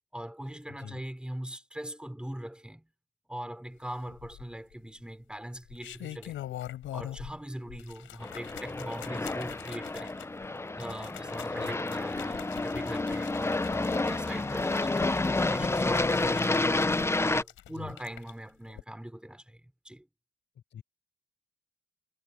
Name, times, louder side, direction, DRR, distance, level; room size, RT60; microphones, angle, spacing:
voice 1, 0.1-2.9 3.3-6.4 6.9-10.2 10.8-16.7 17.2-20.1, right 1 dB, 5° right, 5.4 m, -41 dB
voice 2, 0.7-1.0 11.5-11.8 17.7-17.9 20.5-20.8, left 9 dB, 65° left, 7.9 m, -46 dB
sound 1, 4.1-4.7 5.6-7.4 7.7-18.3 18.7-18.8, left 13 dB, 80° left, 5.6 m, -44 dB
Aircraft, 8.2-17.4, left 2 dB, 15° left, 0.8 m, -29 dB
cardioid pair, 90°, 20 cm